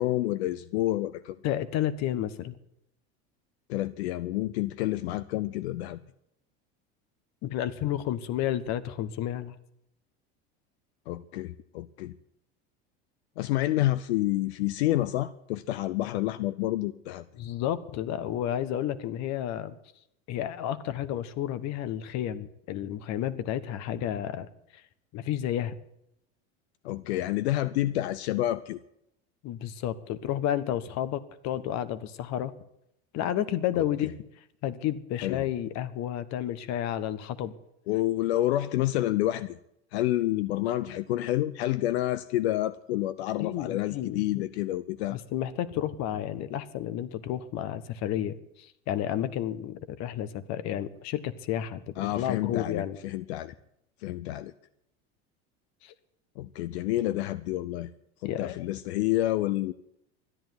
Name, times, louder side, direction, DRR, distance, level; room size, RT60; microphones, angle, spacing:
voice 1, 0.0-1.4 3.7-6.0 11.1-12.1 13.4-17.2 26.8-28.8 33.7-34.1 35.2-35.4 37.9-39.6 39.9-45.2 52.0-53.5 54.0-54.5 56.4-57.9 58.2-59.7, left 15 dB, 85° left, 15 dB, 0.7 m, -29 dB
voice 2, 1.4-2.6 7.4-9.5 17.4-19.8 20.3-24.5 25.1-25.8 29.4-32.5 33.1-34.1 34.6-37.6 43.4-44.4 45.1-53.0 55.8-55.9 58.2-58.7, left 11 dB, 55° left, 14 dB, 1.4 m, -31 dB
13.5 x 10.5 x 9.6 m, 0.78 s
supercardioid pair, 110°, 32 cm